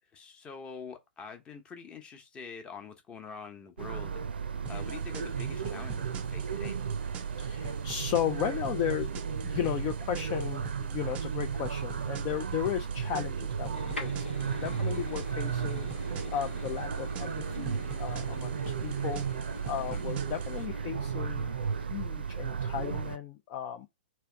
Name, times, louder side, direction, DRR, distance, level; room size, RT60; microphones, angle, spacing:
voice 1, 0.2-4.2 4.7-6.8 12.7-12.8 14.6-14.9 19.8-20.1, left 5 dB, 15° left, 1.0 m, -45 dB
sound 1, 3.8-23.2, right 6 dB, 65° right, 0.6 m, -34 dB
sound 2, 4.7-20.7, right 6 dB, 25° right, 0.5 m, -47 dB
voice 2, 7.4-23.9, left 10 dB, 35° left, 0.6 m, -35 dB
sound 3, 13.7-21.9, left 3 dB, 85° left, 1.7 m, -45 dB
3.4 x 3.2 x 4.8 m
figure-of-eight pair, 115°, 6 cm